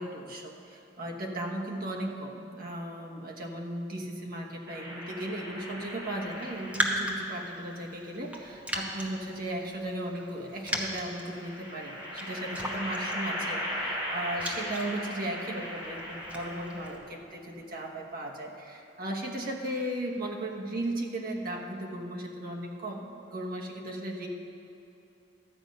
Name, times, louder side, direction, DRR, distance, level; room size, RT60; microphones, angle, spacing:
voice 1, 0.0-24.3, right 1 dB, 55° right, 0 dB, 1.3 m, -36 dB
sound 1, 4.7-7.3 8.4-9.4 11.0-17.0, equal, 25° right, 2.9 m, -38 dB
Raindrop, 6.3-17.0, equal, 10° right, 1.0 m, -38 dB
12.5 x 8.9 x 5.2 m, 2.9 s
head